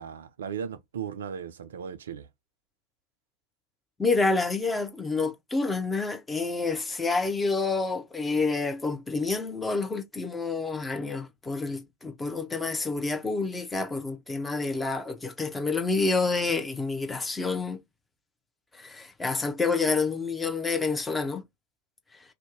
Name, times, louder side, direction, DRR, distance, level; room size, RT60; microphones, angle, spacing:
voice 1, 0.0-2.3, right 7 dB, 65° right, 0.4 m, -36 dB
voice 2, 4.0-17.8 18.7-21.4, left 3 dB, 10° left, 0.6 m, -28 dB
2.6 x 2.1 x 3.6 m
figure-of-eight pair, 90°, 0 cm